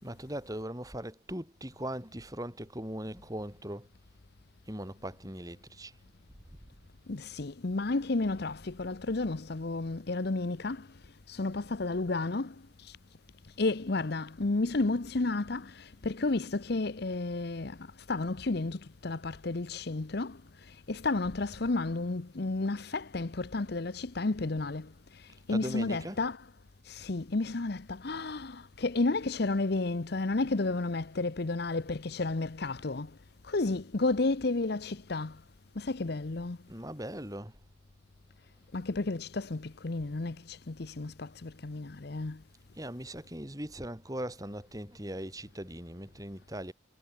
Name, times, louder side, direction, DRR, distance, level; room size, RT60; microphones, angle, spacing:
voice 1, 0.0-3.9 4.7-6.0 25.5-26.2 36.7-37.6 42.7-46.7, right 1 dB, 15° right, 4.8 m, -39 dB
voice 2, 7.1-10.9 11.3-13.0 13.6-26.5 26.8-33.2 33.4-35.4 35.8-36.6 38.7-42.4, left 3 dB, 50° left, 0.8 m, -32 dB
head